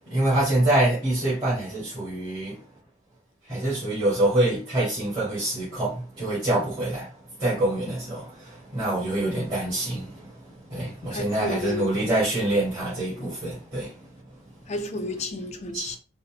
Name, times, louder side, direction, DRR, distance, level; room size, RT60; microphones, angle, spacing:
voice 1, 0.1-2.6 3.5-14.1 15.7-16.0, right 1 dB, 25° right, 1.6 m, -26 dB
voice 2, 11.1-11.9 14.7-16.0, left 2 dB, 35° left, 0.4 m, -32 dB
4.0 x 2.0 x 2.4 m
head